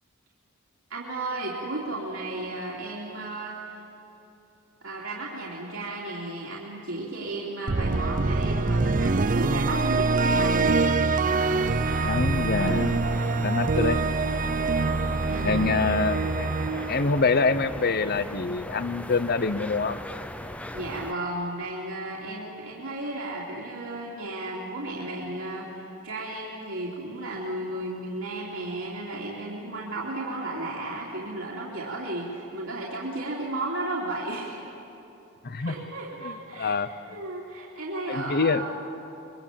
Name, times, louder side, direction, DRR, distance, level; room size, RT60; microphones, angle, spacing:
voice 1, 0.9-3.6 4.8-10.6 15.3-15.7 20.4-25.7 26.0-34.6 35.6-36.8 37.0-38.7, right 2 dB, 70° right, -5 dB, 3.0 m, -34 dB
sound 1, 7.7-17.9, right 3 dB, 40° right, 0.6 m, -25 dB
sound 2, 11.3-21.1, left 1 dB, 5° left, 0.7 m, -38 dB
voice 2, 12.0-13.0 13.4-14.0 15.4-16.5 16.9-20.0 35.4-35.7 36.2-36.9 38.1-38.7, left 4 dB, 45° left, 13 dB, 0.8 m, -25 dB
25.0 x 23.0 x 7.5 m, 3.0 s
head